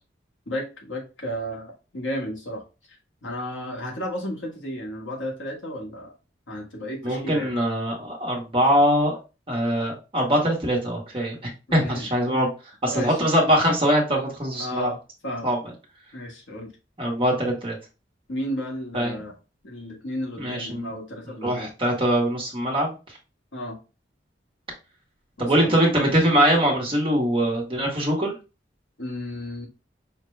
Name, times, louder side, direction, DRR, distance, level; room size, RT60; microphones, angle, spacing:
voice 1, 0.5-2.6 2.9-6.1 6.5-7.5 11.7-12.4 12.9-13.2 14.6-15.0 15.2-15.5 16.1-16.7 18.3-19.3 19.6-21.7 23.5-23.8 25.4-25.7 29.0-29.7, equal, 85° left, 0 dB, 1.3 m, -33 dB
voice 2, 7.0-9.2 9.5-12.5 12.8-14.9 15.4-15.6 17.0-17.8 18.9-19.2 20.4-20.9 21.4-23.2 25.4-28.3, equal, 30° right, -2 dB, 1.1 m, -22 dB
5.7 x 2.2 x 3.1 m, 0.31 s
head